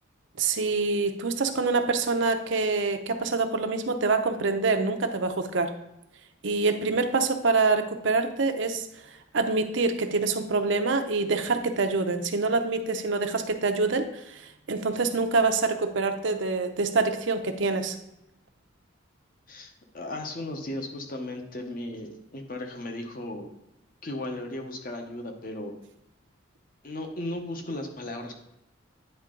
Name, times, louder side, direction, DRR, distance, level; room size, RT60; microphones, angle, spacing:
voice 1, 0.4-5.7 6.4-8.9 9.3-14.4 14.7-17.9, right 3 dB, 65° right, 7 dB, 0.6 m, -25 dB
voice 2, 19.5-23.5 24.0-25.7 26.8-28.4, left 1 dB, 45° left, 4 dB, 0.9 m, -36 dB
9.6 x 3.6 x 3.8 m, 0.86 s
head